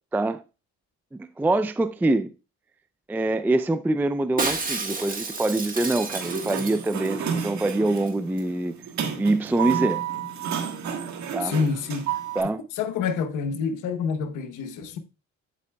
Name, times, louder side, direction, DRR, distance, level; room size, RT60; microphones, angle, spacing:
voice 1, 1.1-2.3 3.1-8.7 9.2-10.0 11.3-11.6 12.4-12.6, right 2 dB, 5° right, 0.3 m, -24 dB
Shatter, 4.4-7.1 7.4-7.5 7.7-8.1 8.4-8.5, right 3 dB, 30° right, 1.6 m, -31 dB
Sliding door, 5.9-12.4, right 8 dB, 70° right, 1.5 m, -31 dB
voice 2, 11.4-12.2 12.8-15.0, left 5 dB, 90° left, 1.0 m, -27 dB
8.3 x 8.2 x 2.2 m
cardioid pair, 90°, 30 cm